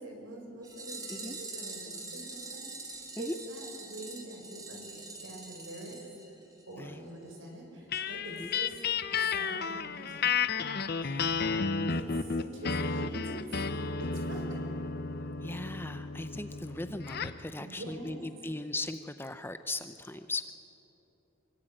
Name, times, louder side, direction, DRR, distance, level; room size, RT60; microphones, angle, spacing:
voice 1, 0.0-6.0 6.6-8.8 9.1-10.3 11.9-13.4 14.0-14.8 17.6-18.2, right 1 dB, 70° right, 1 dB, 6.1 m, -45 dB
sound 1, 0.6-6.8 7.1-7.2 7.4-7.5 7.9-8.0 8.3-8.4, right 3 dB, 20° right, 3.1 m, -44 dB
sound 2, 7.9-17.4, left 5 dB, 50° left, 0.8 m, -32 dB
voice 2, 11.0-11.6 15.4-20.5, left 2 dB, 10° left, 10 dB, 0.6 m, -39 dB
24.5 x 24.0 x 9.0 m, 2.9 s
head